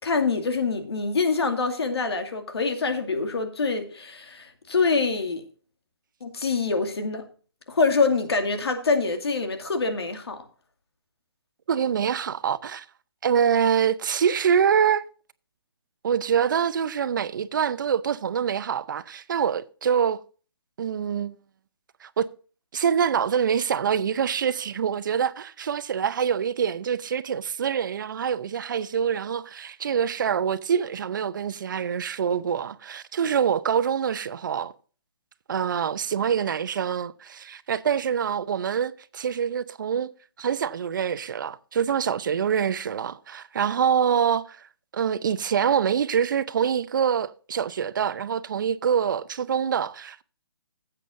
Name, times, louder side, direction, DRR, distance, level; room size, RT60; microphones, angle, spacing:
voice 1, 0.0-5.4 6.2-7.2 7.7-10.5, left 4 dB, 80° left, 2.3 m, -25 dB
voice 2, 11.7-12.9 13.2-15.1 16.0-20.2 20.8-21.4 22.0-22.3 22.7-34.7 35.5-40.1 40.4-44.6 44.9-50.2, right 7 dB, 50° right, 0.7 m, -25 dB
16.0 x 8.3 x 2.6 m
hypercardioid pair, 165°, 13 cm